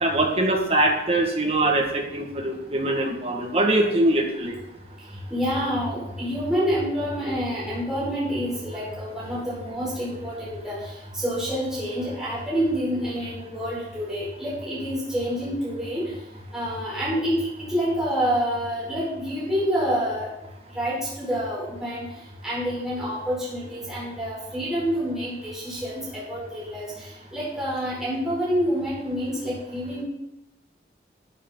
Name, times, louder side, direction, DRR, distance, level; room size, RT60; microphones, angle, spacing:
voice 1, 0.0-4.5, right 1 dB, 35° right, 1 dB, 1.8 m, -22 dB
voice 2, 5.3-16.1 16.5-20.3 20.7-22.1 22.4-26.8 27.3-30.0, equal, 5° right, -9 dB, 4.7 m, -27 dB
12.0 x 9.7 x 3.9 m, 0.89 s
head